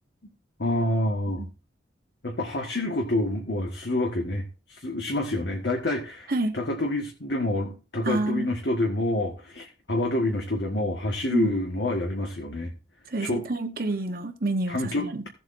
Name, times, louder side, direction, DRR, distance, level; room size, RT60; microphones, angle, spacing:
voice 1, 0.6-1.4 2.2-12.7 13.2-13.4 14.7-15.3, left 1 dB, 65° left, 1.5 m, -28 dB
voice 2, 8.0-8.5 11.3-11.5 13.1-15.3, right 2 dB, 50° right, 1.2 m, -28 dB
16.0 x 7.7 x 2.6 m
head